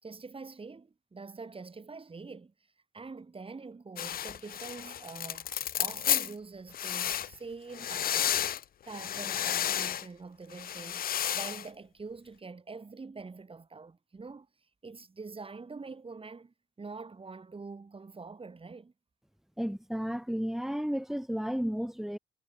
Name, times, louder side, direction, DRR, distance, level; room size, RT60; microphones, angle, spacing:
voice 1, 0.0-2.5 2.9-5.5 5.8-8.4 8.8-14.5 14.8-18.9, right 4 dB, 25° right, 5.3 m, -45 dB
sound 1, 4.0-6.3 6.7-7.3 7.7-8.6 8.9-10.1 10.5-11.7, left 10 dB, 50° left, 0.5 m, -32 dB
voice 2, 19.6-22.2, equal, ahead, 2.7 m, -33 dB
cardioid pair, 90°, 20 cm